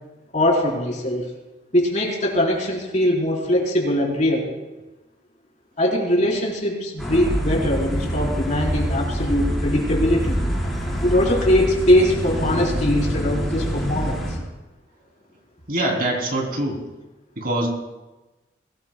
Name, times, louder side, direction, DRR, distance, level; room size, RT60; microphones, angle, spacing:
voice 1, 0.3-1.3 1.7-4.5 5.8-10.4 11.0-14.4, left 1 dB, 40° left, -3 dB, 4.5 m, -21 dB
sound 1, 7.0-14.4, equal, ahead, 4.9 m, -25 dB
voice 2, 15.7-16.8 17.4-17.7, right 1 dB, 50° right, 0 dB, 3.5 m, -23 dB
22.5 x 19.0 x 2.4 m, 1.1 s
head